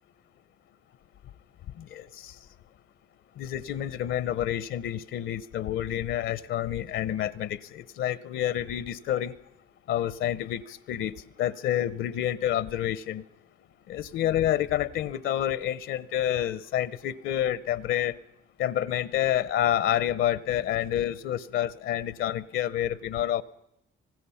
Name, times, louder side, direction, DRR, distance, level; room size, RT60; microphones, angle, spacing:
voice 1, 1.8-2.4 3.4-9.3 9.9-11.1 11.4-13.2 13.9-18.2 18.6-23.4, left 11 dB, 80° left, 18 dB, 0.8 m, -28 dB
26.0 x 19.0 x 5.7 m, 0.81 s
cardioid pair, 90°, 20 cm